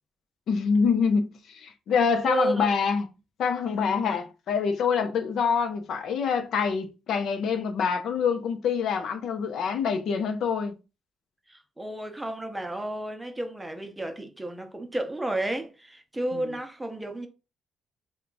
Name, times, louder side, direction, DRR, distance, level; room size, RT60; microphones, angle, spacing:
voice 1, 0.5-3.1 3.4-10.7 16.3-16.5, left 6 dB, 70° left, 0.6 m, -26 dB
voice 2, 2.2-2.7 4.0-4.2 11.5-17.3, right 1 dB, 10° right, 0.7 m, -32 dB
3.4 x 2.3 x 4.0 m
cardioid pair, 90°, 0 cm